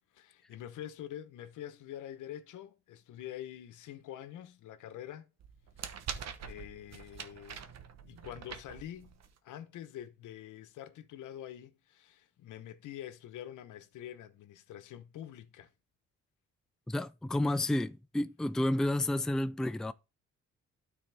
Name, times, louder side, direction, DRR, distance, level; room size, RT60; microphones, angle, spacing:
voice 1, 0.0-5.3 5.9-6.0 6.4-7.7 8.1-9.2 9.4-15.7, left 11 dB, 80° left, 0.9 m, -46 dB
sound 1, 5.4-9.4, right 7 dB, 60° right, 1.1 m, -44 dB
voice 2, 16.9-19.9, left 1 dB, ahead, 0.4 m, -30 dB
12.5 x 4.2 x 3.4 m
cardioid pair, 90°, 30 cm